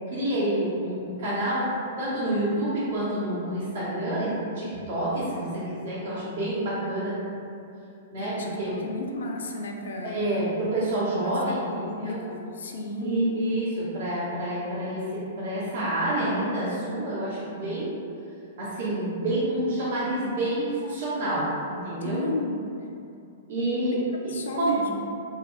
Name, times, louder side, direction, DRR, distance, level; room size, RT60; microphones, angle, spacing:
voice 1, 0.1-1.7 2.0-7.2 8.1-8.7 10.0-12.2 13.0-17.9 18.6-22.2 23.5-24.7, right 1 dB, 65° right, -9 dB, 0.9 m, -28 dB
voice 2, 8.2-10.2 11.2-13.2 22.0-22.6 24.3-25.0, left 1 dB, 75° left, 2 dB, 0.4 m, -33 dB
2.7 x 2.2 x 3.0 m, 2.6 s
hypercardioid pair, 115°, 0 cm